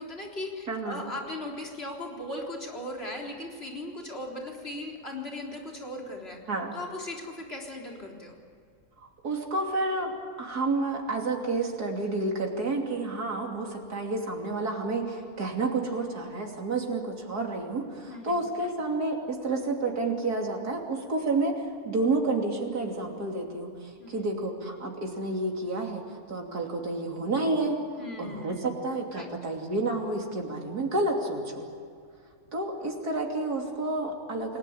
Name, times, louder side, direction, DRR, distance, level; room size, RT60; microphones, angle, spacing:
voice 1, 0.0-6.4 6.7-8.3 18.1-18.4 24.0-24.3 28.0-28.6 29.1-29.3, left 1 dB, 40° left, -1 dB, 4.1 m, -38 dB
voice 2, 0.7-1.0 6.5-6.7 9.2-26.0 26.3-27.8 28.2-31.6 32.5-34.6, right 2 dB, 85° right, 1 dB, 3.5 m, -30 dB
29.0 x 19.0 x 8.8 m, 2.3 s
omnidirectional pair, 1.6 m